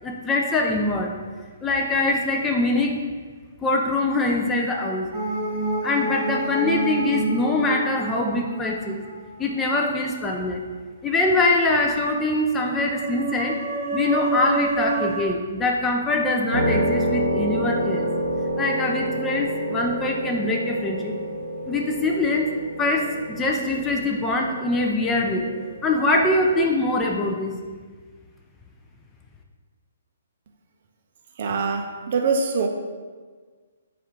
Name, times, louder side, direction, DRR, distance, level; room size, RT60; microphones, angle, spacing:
voice 1, 0.0-1.1 1.6-3.0 3.6-5.1 5.8-9.0 9.4-10.6 11.0-13.6 13.9-18.1 18.6-21.1 21.7-22.5 22.8-25.5 25.8-27.6, left 2 dB, 15° left, 1 dB, 0.4 m, -23 dB
sound 1, 5.1-9.9 12.5-15.2, right 2 dB, 15° right, 0.9 m, -28 dB
sound 2, 16.5-26.7, right 1 dB, 85° right, 0.9 m, -28 dB
voice 2, 31.4-32.7, right 4 dB, 50° right, 3 dB, 0.5 m, -24 dB
4.2 x 2.4 x 4.5 m, 1.5 s
figure-of-eight pair, 125°, 0 cm